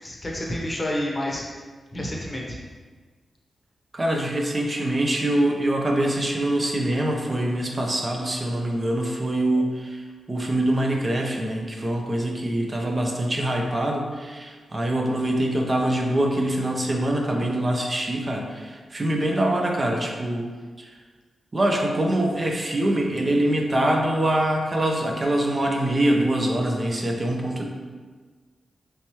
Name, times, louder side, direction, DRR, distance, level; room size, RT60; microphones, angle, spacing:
voice 1, 0.0-1.4 1.9-2.6, left 1 dB, 30° left, -2 dB, 0.7 m, -29 dB
voice 2, 3.9-20.5 20.8-21.0 21.5-27.7, right 1 dB, 35° right, 0 dB, 0.5 m, -24 dB
3.4 x 2.9 x 2.9 m, 1.4 s
cardioid pair, 60°, 0 cm